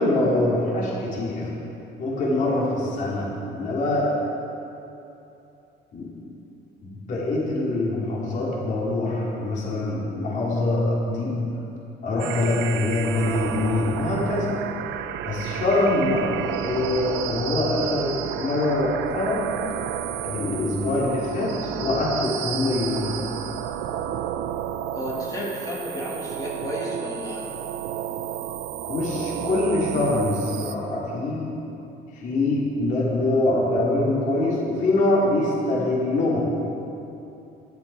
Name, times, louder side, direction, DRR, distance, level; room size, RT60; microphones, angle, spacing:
voice 1, 0.0-1.5 2.0-4.1 5.9-6.1 6.8-11.3 12.0-14.5 15.2-16.2 16.6-19.4 20.2-21.5 21.8-23.1 28.9-31.5 32.1-36.4, left 2 dB, 45° left, -6 dB, 3.2 m, -24 dB
sound 1, 12.2-30.7, right 10 dB, 85° right, 0.6 m, -32 dB
voice 2, 24.9-27.5, equal, 20° left, -5 dB, 2.1 m, -32 dB
12.5 x 11.0 x 4.9 m, 2.9 s
cardioid pair, 155°, 19 cm